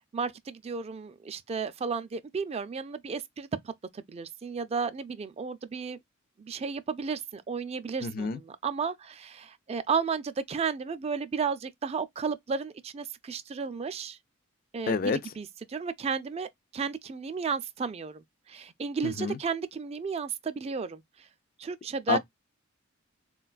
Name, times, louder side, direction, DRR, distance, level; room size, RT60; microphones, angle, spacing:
voice 1, 0.1-6.0 6.4-14.2 14.7-21.0 21.6-22.2, right 5 dB, 30° right, 0.3 m, -33 dB
voice 2, 8.0-8.4 14.9-15.2 19.0-19.4 22.1-22.2, left 5 dB, 45° left, 0.4 m, -28 dB
3.8 x 2.2 x 2.3 m
head